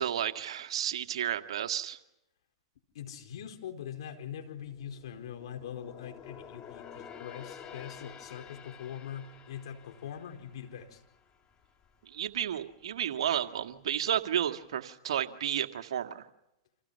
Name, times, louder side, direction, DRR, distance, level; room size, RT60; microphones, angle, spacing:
voice 1, 0.0-2.0 12.1-16.2, right 10 dB, 70° right, 7 dB, 1.9 m, -32 dB
voice 2, 2.9-11.0, left 9 dB, 70° left, 4 dB, 4.6 m, -42 dB
sound 1, 4.5-12.0 12.3-12.6 13.1-13.8 14.2-14.3, left 8 dB, 30° left, 2.9 m, -50 dB
30.0 x 27.0 x 5.8 m, 0.86 s
hypercardioid pair, 115°, 3 cm